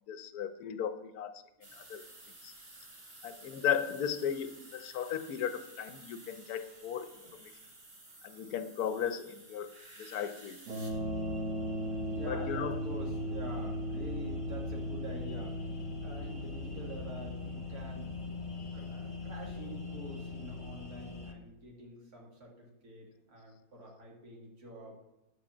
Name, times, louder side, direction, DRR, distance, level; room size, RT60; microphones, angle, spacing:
voice 1, 0.1-1.4 1.8-2.0 2.4-2.5 3.2-7.1 7.4-7.5 8.2-9.7 10.0-10.6 12.3-12.8, left 8 dB, 80° left, 11 dB, 1.1 m, -36 dB
sound 1, 1.6-10.9, right 2 dB, 40° right, 1.8 m, -53 dB
sound 2, 10.7-20.8, equal, 85° right, 1.9 m, -39 dB
sound 3, 10.9-21.3, left 3 dB, 30° left, 0.6 m, -43 dB
voice 2, 12.1-18.1 18.7-25.0, right 1 dB, 70° right, -2 dB, 2.5 m, -47 dB
9.6 x 5.0 x 7.1 m, 0.93 s
omnidirectional pair, 1.6 m